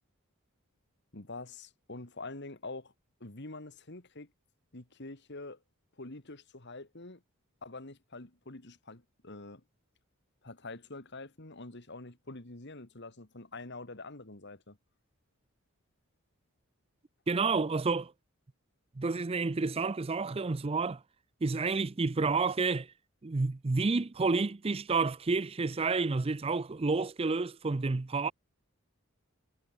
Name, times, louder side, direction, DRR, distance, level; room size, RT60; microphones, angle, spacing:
voice 1, 1.1-2.9 3.2-4.3 4.7-5.6 6.0-7.2 7.6-9.6 10.4-14.8, left 2 dB, 55° left, 2.2 m, -45 dB
voice 2, 17.3-18.1 19.0-21.0 21.4-22.9 23.2-28.3, right 4 dB, 25° right, 0.5 m, -30 dB
head